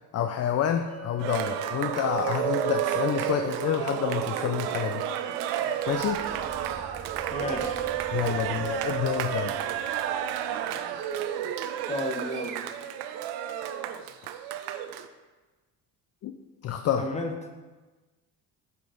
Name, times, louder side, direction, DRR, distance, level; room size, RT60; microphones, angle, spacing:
voice 1, 0.1-5.0 5.9-6.2 8.1-9.6 16.2-16.3 16.6-17.1, left 9 dB, 40° left, 6 dB, 0.4 m, -28 dB
Chink clink, 0.9-5.1, left 4 dB, 65° left, 1.5 m, -48 dB
Cheering, 1.2-15.1, right 10 dB, 85° right, 0.5 m, -31 dB
sound 1, 5.8-11.1, right 2 dB, 30° right, 0.8 m, -49 dB
voice 2, 7.3-7.8 11.9-12.6 17.0-17.3, left 1 dB, 15° left, 3 dB, 1.0 m, -32 dB
8.2 x 3.6 x 3.9 m, 1.3 s
supercardioid pair, 85°, 40 cm